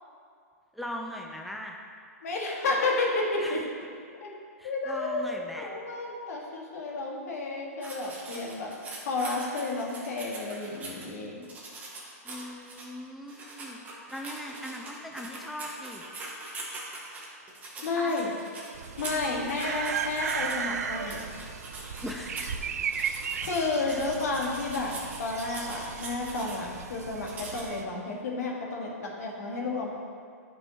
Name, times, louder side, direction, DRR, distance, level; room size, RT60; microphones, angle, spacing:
voice 1, 0.7-1.8 3.4-3.6 4.6-5.7 12.2-13.8 14.1-16.0 17.9-18.2 22.0-22.6 23.8-24.0, equal, ahead, 0 dB, 0.4 m, -40 dB
voice 2, 2.2-3.6 4.1-4.3 4.6-8.7 9.0-11.5 17.8-18.3 19.0-21.2 23.4-24.9 25.2-29.9, left 3 dB, 70° left, -1 dB, 1.4 m, -31 dB
sound 1, 7.8-11.0 11.4-12.9 13.3-20.5 21.0-22.6 22.9-26.6 27.3-27.7, right 2 dB, 20° right, 1.3 m, -42 dB
sound 2, 18.7-27.8, right 6 dB, 80° right, 0.4 m, -36 dB
9.4 x 5.6 x 2.8 m, 2.2 s
hypercardioid pair, 130°, 9 cm